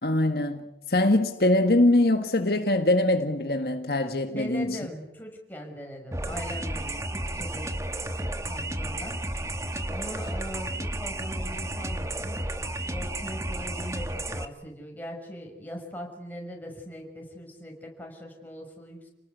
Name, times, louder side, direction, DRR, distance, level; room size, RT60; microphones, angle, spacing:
voice 1, 0.0-4.8, left 1 dB, 60° left, 5 dB, 1.7 m, -23 dB
voice 2, 4.3-7.7 8.1-9.2 9.9-12.4 12.9-19.1, equal, 10° left, 1 dB, 6.2 m, -40 dB
sound 1, 6.1-14.4, right 1 dB, 15° right, 1.4 m, -32 dB
29.5 x 19.0 x 8.3 m, 0.98 s
head